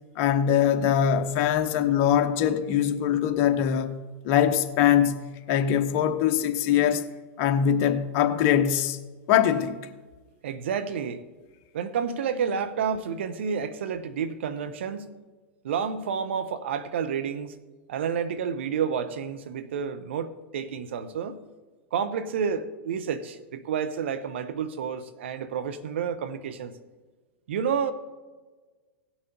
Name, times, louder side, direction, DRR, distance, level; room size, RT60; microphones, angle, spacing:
voice 1, 0.2-4.0 4.2-7.1 7.4-9.0 9.3-9.8, left 9 dB, 50° left, 1.0 m, -22 dB
voice 2, 10.4-11.2 11.7-15.1 15.6-17.5 17.9-21.4 21.9-26.7 27.5-27.9, right 7 dB, 70° right, 0.9 m, -30 dB
18.0 x 6.1 x 3.9 m
hypercardioid pair, 110°, 7 cm